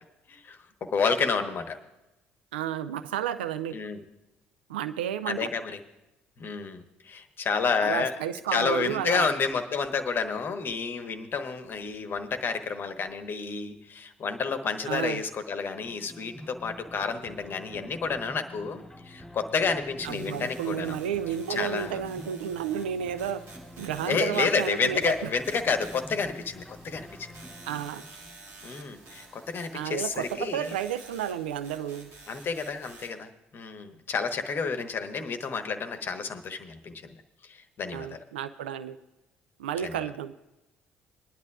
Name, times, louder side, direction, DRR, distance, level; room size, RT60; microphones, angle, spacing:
voice 1, 0.3-1.8 3.7-4.0 5.3-5.8 6.4-8.2 8.5-21.0 21.5-22.0 24.0-27.4 28.6-30.8 32.3-37.2 37.4-38.2 39.8-40.0, left 5 dB, 40° left, 7 dB, 1.1 m, -30 dB
voice 2, 2.5-3.8 4.7-5.5 7.8-9.3 14.9-15.2 20.0-23.4 23.8-25.1 27.7-28.0 29.7-32.1 37.9-39.0 39.6-40.3, right 9 dB, 75° right, 12 dB, 0.4 m, -32 dB
sound 1, 15.8-29.9, equal, 5° left, 3.7 m, -47 dB
sound 2, 20.0-33.1, right 3 dB, 50° right, 2.2 m, -51 dB
23.0 x 10.5 x 2.4 m, 0.96 s
figure-of-eight pair, 50°, 6 cm